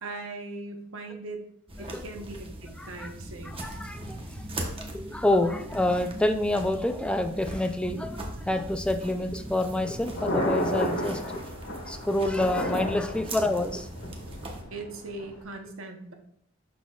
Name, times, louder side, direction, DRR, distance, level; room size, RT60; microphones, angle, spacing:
voice 1, 0.0-1.4 1.8-3.8 14.7-16.1, right 2 dB, 80° right, 4 dB, 0.9 m, -40 dB
sound 1, 1.7-14.6, right 1 dB, 25° right, 1.0 m, -40 dB
voice 2, 2.8-3.1 3.6-11.4 11.9-13.9, left 1 dB, 5° left, 7 dB, 0.3 m, -28 dB
Thunder, 9.4-15.4, equal, 85° left, 1.8 m, -33 dB
11.5 x 4.1 x 2.4 m, 0.68 s
head